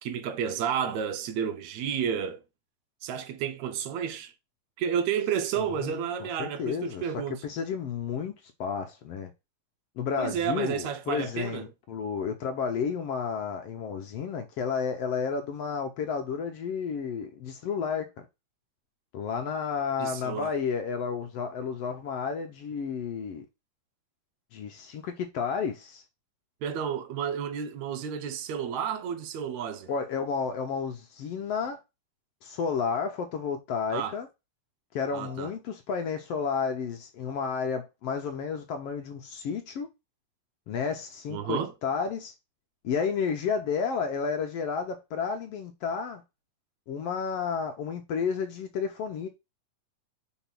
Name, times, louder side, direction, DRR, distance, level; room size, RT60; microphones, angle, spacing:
voice 1, 0.0-2.4 3.0-4.3 4.8-7.4 10.2-11.7 20.0-20.5 26.6-29.9 33.9-34.2 35.1-35.5 41.3-41.7, right 8 dB, 75° right, 2.0 m, -31 dB
voice 2, 5.8-7.0 7.3-8.3 8.6-9.3 10.0-18.1 19.1-23.5 24.5-26.0 29.9-31.8 32.4-34.3 34.9-39.9 40.7-42.3 42.8-46.2 46.9-49.3, left 6 dB, 70° left, 1.6 m, -31 dB
5.7 x 4.0 x 5.8 m
omnidirectional pair, 3.4 m